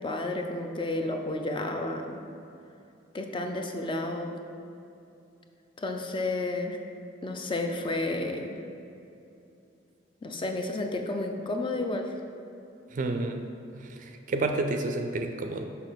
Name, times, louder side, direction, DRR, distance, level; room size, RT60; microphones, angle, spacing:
voice 1, 0.0-2.2 3.1-4.3 5.8-6.8 7.2-8.6 10.2-12.1, left 2 dB, 25° left, 4 dB, 0.5 m, -31 dB
voice 2, 12.9-13.4 13.7-15.6, right 2 dB, 45° right, 5 dB, 0.4 m, -30 dB
6.6 x 5.6 x 4.0 m, 2.7 s
head